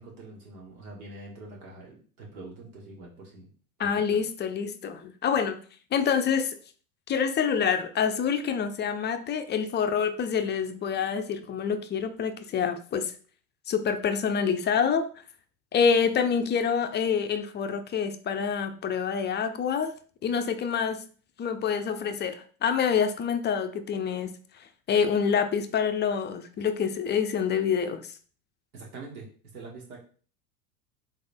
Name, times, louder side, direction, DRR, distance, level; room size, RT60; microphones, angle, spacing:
voice 1, 0.0-3.5 3.8-4.3 28.7-29.3 29.5-30.0, right 3 dB, 70° right, 2.2 m, -44 dB
voice 2, 3.8-5.6 5.9-6.6 7.1-13.1 13.7-15.1 15.7-19.9 20.2-21.1 21.4-24.4 24.9-28.1, left 6 dB, 25° left, 0.6 m, -27 dB
3.8 x 3.8 x 3.5 m
hypercardioid pair, 90°, 45 cm